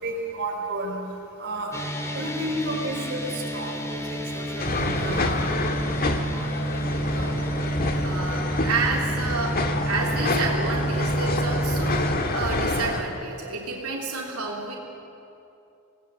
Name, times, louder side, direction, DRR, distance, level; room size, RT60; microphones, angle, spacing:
voice 1, 0.0-1.0 1.4-1.7 2.1-5.3, right 1 dB, 50° right, 0 dB, 4.5 m, -32 dB
sound 1, 1.7-12.2, right 1 dB, 15° left, 2.1 m, -29 dB
sound 2, 4.6-13.0, left 2 dB, 45° left, 1.7 m, -27 dB
voice 2, 7.1-7.5 8.0-14.7, right 4 dB, 90° right, -3 dB, 3.2 m, -30 dB
25.5 x 19.0 x 8.2 m, 2.8 s
head